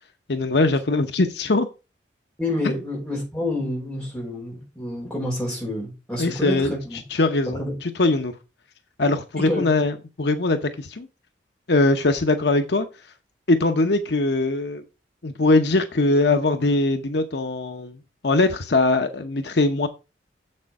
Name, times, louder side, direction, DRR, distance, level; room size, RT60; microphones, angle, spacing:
voice 1, 0.3-1.7 6.2-8.3 9.0-11.1 11.7-12.9 13.5-14.8 15.2-19.9, left 2 dB, 65° left, 0.8 m, -21 dB
voice 2, 2.4-7.0 7.5-7.8 9.4-9.6, left 1 dB, 5° left, 4.8 m, -28 dB
7.5 x 6.5 x 4.7 m
head